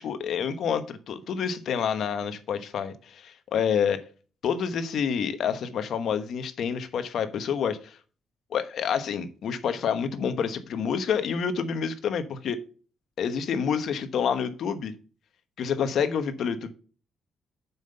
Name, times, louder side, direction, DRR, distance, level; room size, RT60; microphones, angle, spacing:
voice 1, 0.0-4.0 4.4-8.0 8.5-12.6 13.2-14.9 15.6-16.7, left 7 dB, 65° left, 1.1 m, -28 dB
7.2 x 5.8 x 5.4 m
cardioid pair, 90°, 0 cm